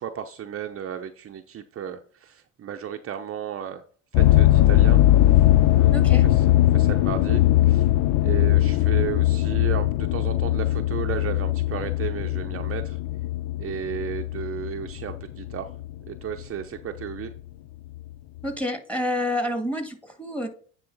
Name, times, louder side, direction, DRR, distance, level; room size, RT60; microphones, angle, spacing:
voice 1, 0.0-3.8 4.1-5.0 5.7-7.9 8.2-13.0 13.6-15.7 16.1-17.3, right 9 dB, 45° right, 5 dB, 0.7 m, -34 dB
sound 1, 4.1-16.4 17.0-17.4 18.0-18.1 18.4-18.5, left 14 dB, 65° left, 0.5 m, -20 dB
voice 2, 5.9-6.3 18.4-20.5, left 1 dB, 5° left, 5 dB, 1.9 m, -28 dB
9.4 x 3.7 x 4.0 m, 0.43 s
supercardioid pair, 80°, 32 cm